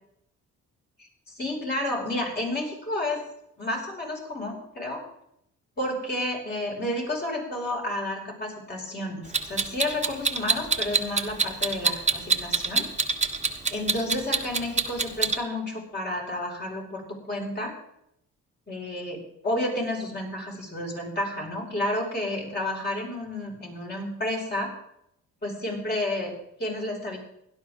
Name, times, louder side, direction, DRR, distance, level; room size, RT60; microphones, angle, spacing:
voice 1, 1.0-3.2 3.6-5.0 5.8-12.8 13.7-17.7 18.7-24.7 25.4-27.2, left 1 dB, 35° left, -2 dB, 5.8 m, -31 dB
Clock, 9.3-15.4, right 4 dB, 25° right, 1.3 m, -24 dB
17.0 x 11.5 x 3.7 m, 0.76 s
cardioid pair, 90°, 30 cm